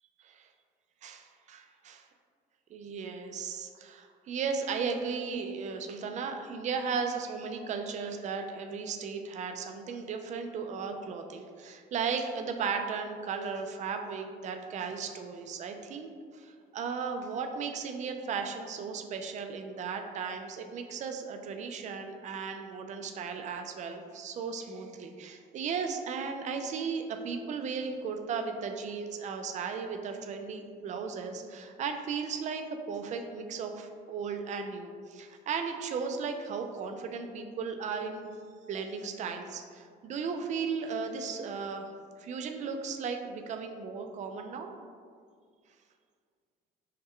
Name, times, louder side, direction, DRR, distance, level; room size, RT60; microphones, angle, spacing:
voice 1, 1.0-2.0 2.7-38.3 38.7-41.9 42.2-44.7, right 5 dB, 45° right, 5 dB, 0.4 m, -36 dB
5.4 x 2.2 x 3.6 m, 2.1 s
cardioid pair, 110°, 17 cm